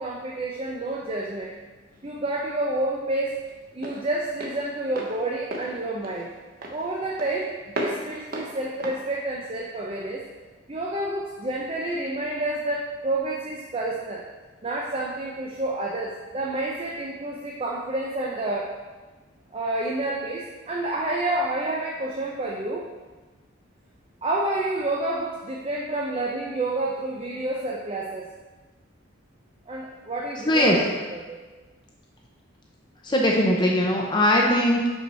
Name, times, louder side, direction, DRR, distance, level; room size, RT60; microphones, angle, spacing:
voice 1, 0.0-1.5 2.0-3.4 3.7-6.3 6.7-10.2 10.7-14.2 14.6-18.8 19.5-22.9 24.2-28.2 29.7-30.8 31.1-31.4, right 2 dB, 30° right, -2 dB, 0.6 m, -29 dB
Walk footsteps, 1.5-10.2, right 1 dB, 50° right, 0.9 m, -37 dB
voice 2, 30.4-30.8 33.0-34.9, left 1 dB, 20° left, -1 dB, 0.6 m, -20 dB
5.5 x 4.6 x 5.4 m, 1.3 s
head